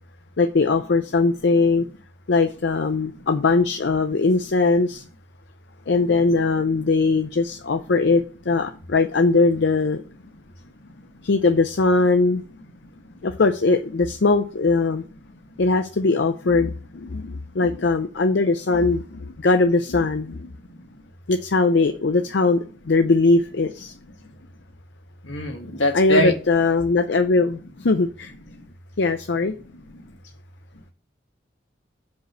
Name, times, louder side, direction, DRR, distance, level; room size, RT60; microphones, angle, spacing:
voice 1, 0.4-1.9 2.3-5.0 5.9-10.0 11.2-12.4 13.2-15.0 15.6-20.5 21.3-23.9 25.9-28.3 29.0-29.5, left 3 dB, 65° left, 7 dB, 0.5 m, -20 dB
voice 2, 25.2-26.3 29.9-30.0, equal, 80° left, 3 dB, 1.7 m, -23 dB
6.0 x 5.3 x 6.7 m, 0.39 s
head